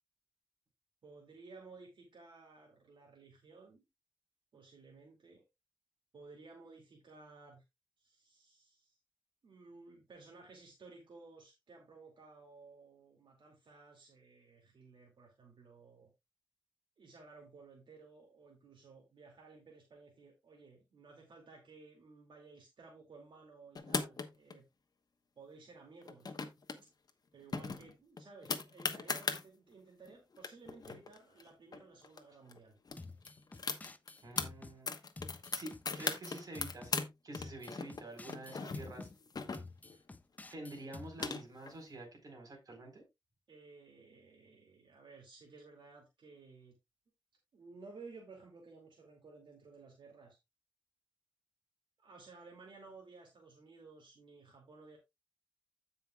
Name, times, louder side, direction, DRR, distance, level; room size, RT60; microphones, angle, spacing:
voice 1, 1.0-3.8 4.5-5.4 6.1-7.6 8.0-9.0 9.4-16.1 17.0-24.6 25.4-26.4 26.8-26.9 27.3-32.8 39.9-40.0 43.5-46.7 47.5-50.4 52.0-55.0, right 4 dB, 70° right, 2.4 m, -56 dB
sound 1, 23.7-24.5 26.0-26.8 27.1-27.2 27.5-29.4 30.1-30.2 30.3-32.2 32.5-32.6 32.9-34.5 34.9-37.1 37.3-39.9 40.8-41.7, left 4 dB, 50° left, 1.1 m, -38 dB
sound 2, 33.0-34.8 35.2-37.0 37.3-39.2 39.5-41.3, left 3 dB, 20° left, 0.5 m, -50 dB
voice 2, 34.2-34.9 35.5-39.1 40.5-43.0, right 2 dB, 45° right, 4.2 m, -48 dB
16.0 x 5.6 x 2.3 m
wide cardioid pair, 155°, 8 cm